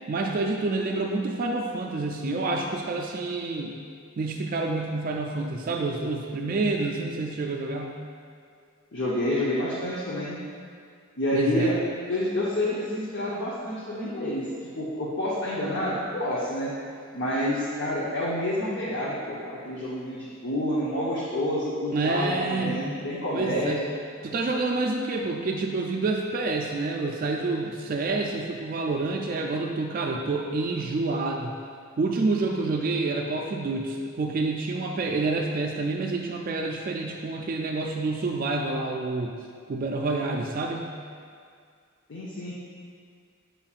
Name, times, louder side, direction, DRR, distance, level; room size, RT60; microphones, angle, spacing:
voice 1, 0.0-3.8 4.2-8.0 11.3-11.7 21.9-22.9 23.3-23.8 24.2-31.6 32.0-39.3 39.7-40.9, right 3 dB, 40° right, 1 dB, 0.3 m, -28 dB
voice 2, 8.9-10.4 11.2-11.8 12.1-16.7 17.1-23.9 42.1-42.5, left 1 dB, 55° left, -7 dB, 0.8 m, -28 dB
7.0 x 5.6 x 2.4 m, 2.2 s
head